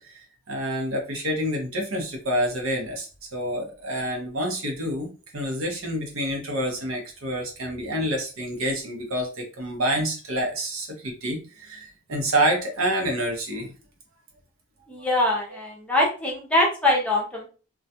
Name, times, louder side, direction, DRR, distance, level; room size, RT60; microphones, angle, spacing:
voice 1, 0.0-13.7 15.0-15.1, right 1 dB, 65° right, 1 dB, 0.7 m, -28 dB
voice 2, 14.9-17.5, left 1 dB, 5° left, -2 dB, 0.6 m, -23 dB
2.3 x 2.2 x 2.7 m, 0.35 s
head